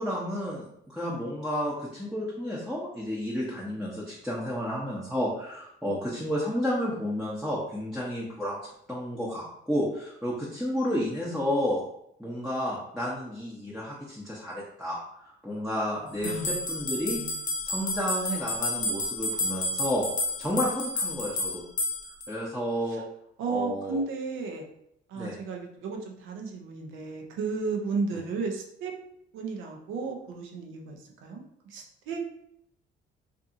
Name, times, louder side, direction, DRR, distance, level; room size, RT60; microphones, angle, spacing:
voice 1, 0.0-11.8 12.2-17.2 17.6-20.1 20.4-21.6 22.3-23.0 23.5-24.0 25.2-25.4 28.1-28.2, equal, 5° right, -7 dB, 0.7 m, -31 dB
sound 1, 16.2-22.3, left 2 dB, 40° left, 0.5 m, -30 dB
voice 2, 16.2-16.6 17.0-17.4 22.9-23.0 23.4-24.7 25.1-28.9 29.3-32.2, right 4 dB, 85° right, 2 dB, 0.6 m, -34 dB
2.6 x 2.5 x 2.5 m, 0.74 s
cardioid pair, 80°, 20 cm